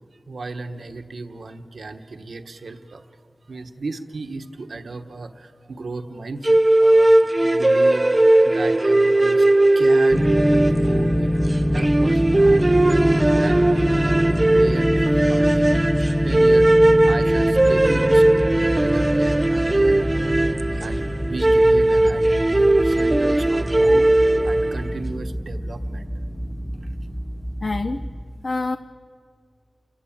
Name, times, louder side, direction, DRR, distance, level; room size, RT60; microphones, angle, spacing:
voice 1, 0.3-15.8 16.2-20.5 20.7-26.1, right 3 dB, 85° right, 7 dB, 1.2 m, -35 dB
sound 1, 6.4-24.9, right 1 dB, 25° right, 0.5 m, -18 dB
sound 2, 10.1-28.2, equal, 10° left, 1.5 m, -25 dB
voice 2, 27.6-28.1 28.4-28.8, left 3 dB, 45° left, 9 dB, 0.6 m, -26 dB
29.5 x 14.5 x 8.9 m, 2.2 s
wide cardioid pair, 90°, 0 cm